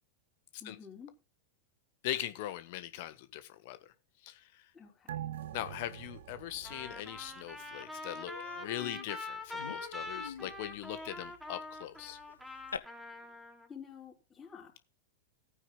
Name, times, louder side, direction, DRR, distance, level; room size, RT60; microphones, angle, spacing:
voice 1, 0.6-1.1 4.7-5.3 13.2-13.4 13.7-14.8, left 7 dB, 15° left, 4.4 m, -50 dB
voice 2, 2.0-3.9 4.2-4.7 5.5-12.2, left 14 dB, 50° left, 1.4 m, -41 dB
sound 1, 5.1-8.0 8.3-8.4, right 11 dB, 60° right, 0.7 m, -45 dB
Trumpet, 6.6-13.7, left 2 dB, ahead, 3.4 m, -44 dB
Human voice, 7.3-7.4 7.7-7.9 8.3-12.8, left 6 dB, 70° left, 1.0 m, -46 dB
18.5 x 9.2 x 2.3 m
figure-of-eight pair, 90°, 0 cm